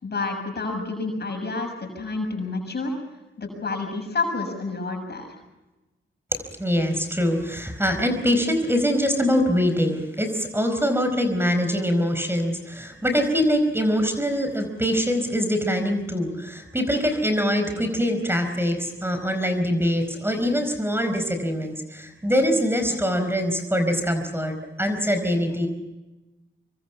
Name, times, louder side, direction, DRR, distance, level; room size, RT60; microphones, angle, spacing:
voice 1, 0.0-2.9 3.4-5.3, left 3 dB, 55° left, 3 dB, 6.9 m, -29 dB
voice 2, 6.3-25.7, equal, 10° right, 7 dB, 4.7 m, -23 dB
25.0 x 24.0 x 6.0 m, 1.1 s
cardioid pair, 55°, 20 cm